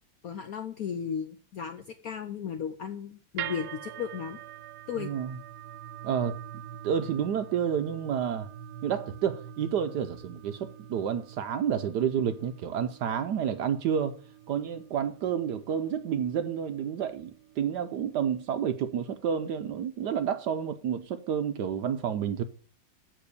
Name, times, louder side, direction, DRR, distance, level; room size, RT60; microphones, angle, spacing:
voice 1, 0.2-4.4 4.9-5.1, left 7 dB, 70° left, 0.9 m, -35 dB
sound 1, 3.4-19.6, right 10 dB, 90° right, 1.4 m, -45 dB
voice 2, 5.0-5.4 6.0-6.4 6.8-8.5 8.8-14.2 14.5-22.4, right 8 dB, 70° right, 1.0 m, -30 dB
7.6 x 6.1 x 6.7 m
omnidirectional pair, 2.2 m